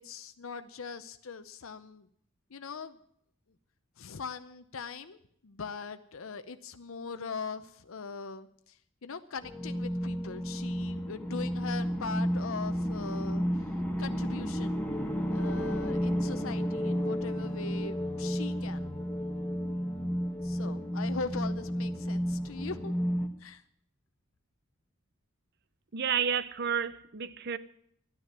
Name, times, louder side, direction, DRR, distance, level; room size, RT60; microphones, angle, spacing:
voice 1, 0.0-2.1 2.5-3.0 4.0-13.7 14.0-14.8 15.3-18.9 20.4-22.9 23.4-23.6, left 4 dB, 70° left, 0.7 m, -41 dB
sound 1, 9.4-23.3, equal, 5° left, 1.3 m, -32 dB
voice 2, 25.9-27.6, right 7 dB, 50° right, 0.7 m, -30 dB
12.5 x 9.8 x 9.5 m
head